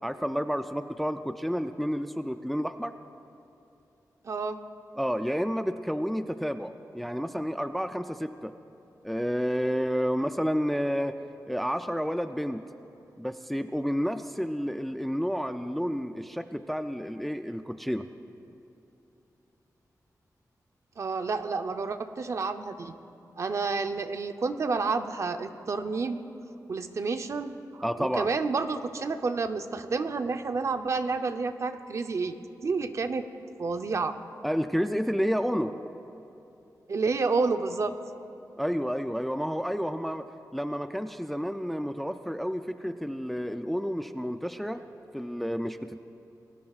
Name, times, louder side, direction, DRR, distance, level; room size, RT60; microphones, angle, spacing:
voice 1, 0.0-2.9 5.0-8.5 9.0-11.2 11.5-12.6 13.2-18.1 27.8-28.3 34.4-35.8 38.6-44.8 45.1-46.0, equal, ahead, 8 dB, 0.4 m, -30 dB
voice 2, 4.2-4.6 21.0-22.9 23.4-26.2 26.7-32.3 32.6-33.3 33.6-34.2 36.9-37.9, right 4 dB, 50° right, 8 dB, 0.7 m, -30 dB
28.5 x 20.5 x 2.4 m, 2.9 s
wide cardioid pair, 175°, 7 cm